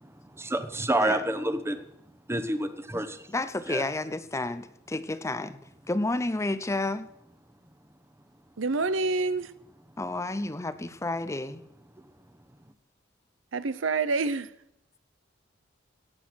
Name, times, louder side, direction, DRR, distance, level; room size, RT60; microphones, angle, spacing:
voice 1, 0.3-1.8 2.3-3.3 3.7-3.8, right 1 dB, 15° right, 1.1 m, -28 dB
voice 2, 3.3-5.6 5.9-7.1 10.0-11.6, left 2 dB, 15° left, 0.6 m, -31 dB
voice 3, 8.6-9.5 13.5-14.5, right 3 dB, 85° right, 0.8 m, -27 dB
17.5 x 8.0 x 6.3 m
head